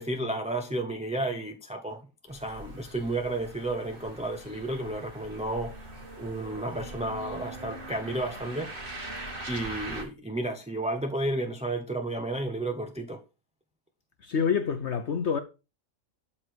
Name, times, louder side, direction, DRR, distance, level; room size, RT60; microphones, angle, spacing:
voice 1, 0.0-2.0 2.3-5.7 6.2-8.7 9.5-13.2, right 2 dB, 5° right, 0.8 m, -32 dB
sound 1, 2.3-10.0, right 2 dB, 40° right, 2.3 m, -42 dB
voice 2, 14.2-15.4, left 6 dB, 60° left, 1.1 m, -27 dB
12.5 x 4.4 x 6.5 m
omnidirectional pair, 1.4 m